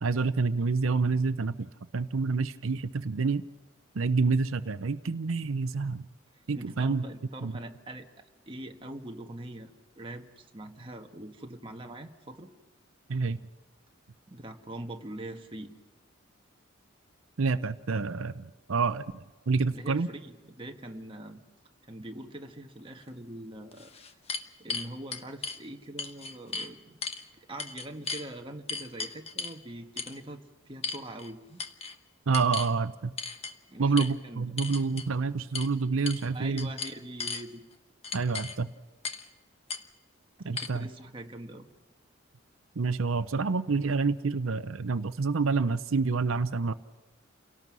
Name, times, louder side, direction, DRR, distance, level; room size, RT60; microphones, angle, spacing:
voice 1, 0.0-1.7 1.9-3.4 3.9-6.1 6.5-7.1 7.4-7.6 13.1-13.4 17.4-19.0 19.5-20.1 32.3-33.1 33.8-36.7 38.1-38.7 40.4-40.9 42.8-46.7, right 4 dB, 90° right, 12 dB, 0.7 m, -28 dB
voice 2, 6.5-8.1 8.5-9.7 10.0-12.5 14.3-15.7 19.7-21.4 21.9-23.9 24.6-26.9 27.5-31.6 33.7-34.6 36.3-37.6 40.4-41.6, right 1 dB, 25° right, 3 dB, 1.4 m, -43 dB
sound 1, 23.1-23.2 23.7-25.6 26.0-26.7 27.0-27.2 27.6-28.3 28.7-29.6 30.0-30.2 30.8-31.3 31.6-31.9 32.3-32.7 33.2-33.5 34.0-34.1 34.6-35.1 35.5-35.7 36.1-36.3 36.6-37.4 38.0-38.6 39.0-39.3 39.7-39.8 40.6-40.7, left 5 dB, 30° left, 1.1 m, -36 dB
29.0 x 17.5 x 6.2 m, 1.2 s
head